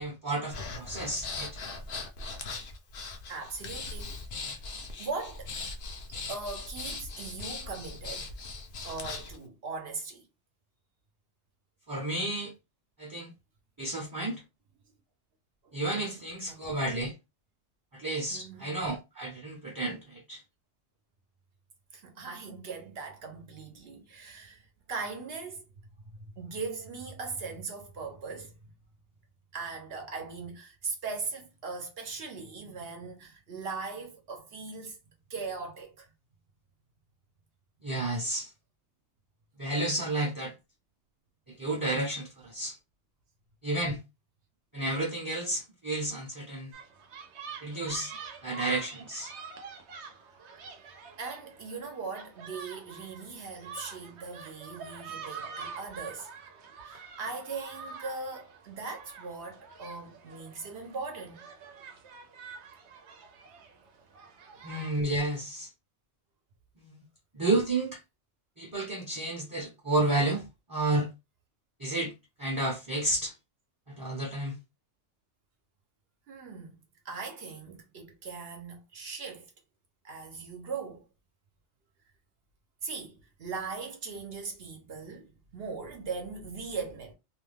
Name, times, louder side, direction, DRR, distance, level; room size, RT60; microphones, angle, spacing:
voice 1, 0.0-1.6 11.9-12.5 13.0-13.3 13.8-14.4 15.7-17.1 17.9-20.4 37.8-38.5 39.6-40.5 41.5-42.8 43.6-44.0 44.7-46.7 47.6-48.2 48.4-49.3 64.6-65.7 66.8-67.0 67.3-68.0 68.6-71.1 71.8-72.1 72.4-73.3 73.9-74.6, right 2 dB, 25° right, 0.6 m, -31 dB
Breathing, 0.5-9.4, left 3 dB, 60° left, 0.7 m, -40 dB
voice 2, 3.3-4.2 4.4-4.6 5.0-5.5 6.3-8.3 8.8-10.2 15.6-15.7 16.5-16.7 18.3-18.8 21.9-25.6 26.0-28.7 29.5-35.0 35.3-36.1 51.2-56.3 56.8-61.5 64.6-64.7 76.3-76.7 77.0-79.5 80.0-81.1 82.8-87.1, right 4 dB, 65° right, 0.9 m, -39 dB
sound 1, 46.7-64.9, right 5 dB, 85° right, 0.9 m, -46 dB
2.5 x 2.2 x 3.3 m
omnidirectional pair, 1.1 m